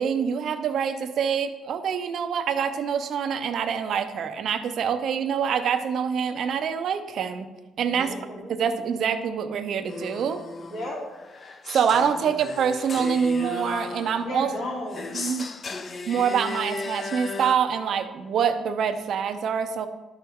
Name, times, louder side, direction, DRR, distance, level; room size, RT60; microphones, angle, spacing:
voice 1, 0.0-7.5 7.8-8.1 8.6-10.4 11.7-14.5 15.1-15.5 16.1-19.9, right 7 dB, 55° right, 8 dB, 0.6 m, -25 dB
voice 2, 7.9-8.5 10.6-11.0 14.2-15.1, left 1 dB, 55° left, -10 dB, 2.6 m, -34 dB
sound 1, 9.9-17.6, left 3 dB, 30° left, 0.5 m, -36 dB
12.0 x 4.5 x 3.6 m, 1.2 s
cardioid pair, 145°, 0 cm